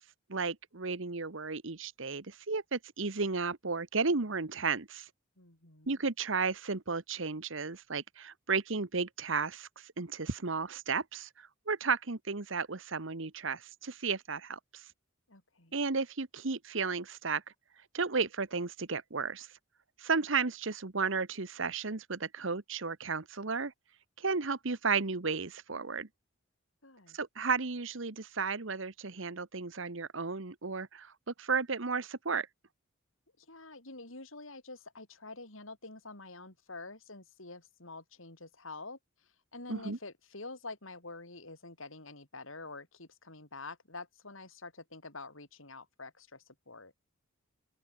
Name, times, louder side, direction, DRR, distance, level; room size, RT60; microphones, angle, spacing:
voice 1, 0.3-5.1 5.9-14.8 15.7-17.4 17.9-19.5 20.0-23.7 24.2-26.1 27.1-31.1 31.4-32.5 39.7-40.0, right 4 dB, 70° right, 1.2 m, -33 dB
voice 2, 5.4-6.0 15.3-15.7 26.8-27.2 33.4-39.0 39.5-46.9, left 3 dB, 75° left, 5.9 m, -47 dB
open air
head